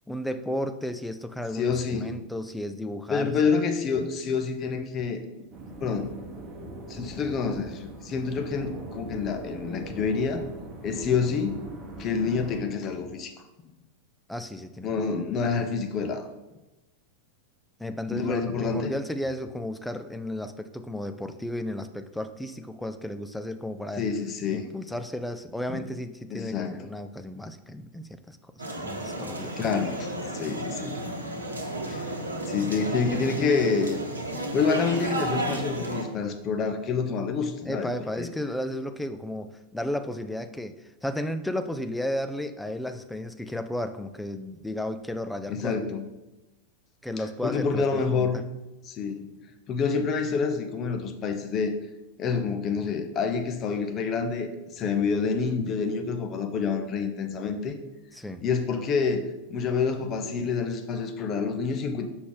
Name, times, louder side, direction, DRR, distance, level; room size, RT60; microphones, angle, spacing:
voice 1, 0.1-3.6 14.3-15.1 17.8-24.0 24.5-29.6 37.7-45.9 47.0-48.4 58.1-58.4, left 1 dB, 5° left, 9 dB, 0.5 m, -34 dB
voice 2, 1.5-2.2 3.1-5.2 5.8-6.2 6.9-10.4 10.8-11.5 12.0-13.3 14.8-16.3 18.1-18.9 24.0-24.7 25.7-25.8 26.3-26.7 29.6-30.1 30.3-31.0 31.9-32.1 32.4-34.1 34.5-38.3 45.5-46.1 47.4-48.4 48.8-49.3 49.7-51.8 52.2-57.8 58.4-62.0, left 5 dB, 30° left, 6 dB, 0.8 m, -27 dB
sound 1, 5.5-12.6, right 2 dB, 30° right, 1.0 m, -41 dB
sound 2, 28.6-36.0, right 1 dB, 75° right, 1.0 m, -32 dB
6.2 x 5.9 x 3.9 m, 1.0 s
figure-of-eight pair, 90°, 0 cm